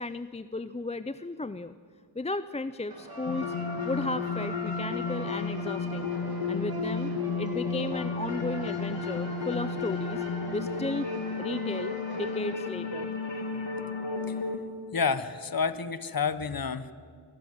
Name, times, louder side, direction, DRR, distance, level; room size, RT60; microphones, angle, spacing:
voice 1, 0.0-1.7 2.2-3.5 3.8-6.1 6.5-10.2 10.5-11.1 11.4-13.1, left 2 dB, 15° left, 13 dB, 0.4 m, -34 dB
sound 1, 2.9-12.6, right 1 dB, 45° right, 3.1 m, -42 dB
sound 2, 3.3-14.6, left 4 dB, 60° left, 2.1 m, -33 dB
voice 2, 14.9-16.9, left 5 dB, 45° left, 14 dB, 1.0 m, -29 dB
24.5 x 13.0 x 9.3 m, 2.2 s
wide cardioid pair, 60°, 49 cm